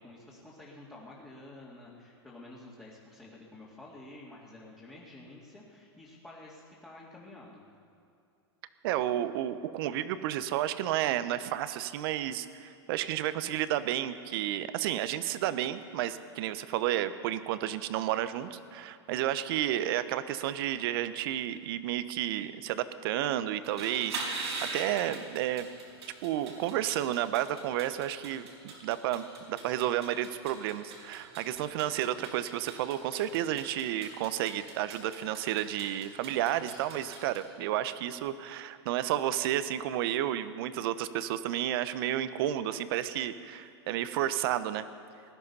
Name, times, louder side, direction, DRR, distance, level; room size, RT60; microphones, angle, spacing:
voice 1, 0.0-7.6, left 2 dB, 10° left, -7 dB, 2.3 m, -50 dB
voice 2, 8.8-25.7 26.2-44.9, right 12 dB, 60° right, 13 dB, 0.8 m, -31 dB
sound 1, 23.6-37.4, right 3 dB, 85° right, 4.5 m, -42 dB
19.5 x 11.5 x 5.5 m, 2.6 s
hypercardioid pair, 125°, 14 cm